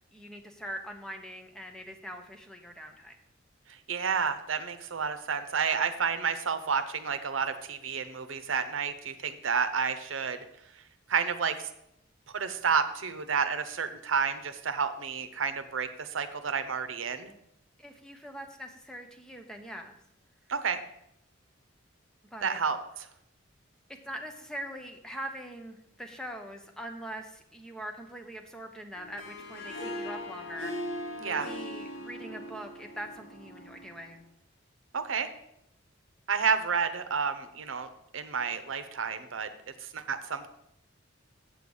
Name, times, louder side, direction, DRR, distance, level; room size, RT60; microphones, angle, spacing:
voice 1, 0.1-3.2 17.8-20.0 22.3-22.6 24.0-30.8 31.2-34.2, equal, 5° left, 3 dB, 0.9 m, -42 dB
voice 2, 3.9-10.4 11.1-11.7 12.3-17.3 20.5-20.8 22.4-22.8 31.2-31.5 34.9-35.3 36.3-37.9 38.1-39.5 39.8-40.5, right 6 dB, 75° right, 9 dB, 0.8 m, -30 dB
Harp, 29.0-34.2, left 1 dB, 80° left, 2.2 m, -40 dB
7.7 x 6.7 x 5.3 m, 0.78 s
head